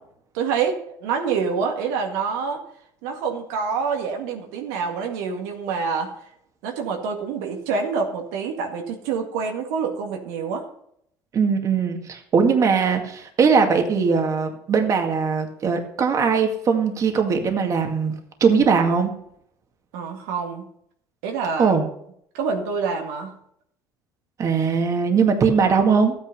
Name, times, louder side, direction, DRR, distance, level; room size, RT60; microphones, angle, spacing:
voice 1, 0.3-2.6 3.0-6.1 6.6-10.7 19.9-20.7 21.2-21.7 22.3-23.4, right 5 dB, 85° right, 3 dB, 2.0 m, -26 dB
voice 2, 11.3-18.1 18.4-19.1 21.6-21.8 24.4-26.1, right 5 dB, 40° right, 5 dB, 2.1 m, -20 dB
13.0 x 9.2 x 5.4 m, 0.70 s
supercardioid pair, 100°, 8 cm